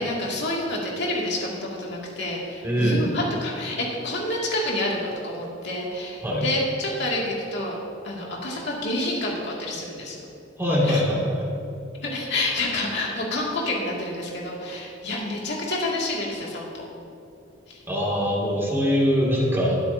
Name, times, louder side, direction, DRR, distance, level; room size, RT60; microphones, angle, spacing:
voice 1, 0.0-7.8 8.0-10.2 10.8-11.0 12.0-16.7 17.7-17.8, left 1 dB, 60° left, -3 dB, 2.4 m, -28 dB
voice 2, 2.6-3.1 6.2-6.5 10.6-11.5 17.9-19.8, equal, 15° right, -4 dB, 2.4 m, -22 dB
21.5 x 8.6 x 2.8 m, 2.8 s
head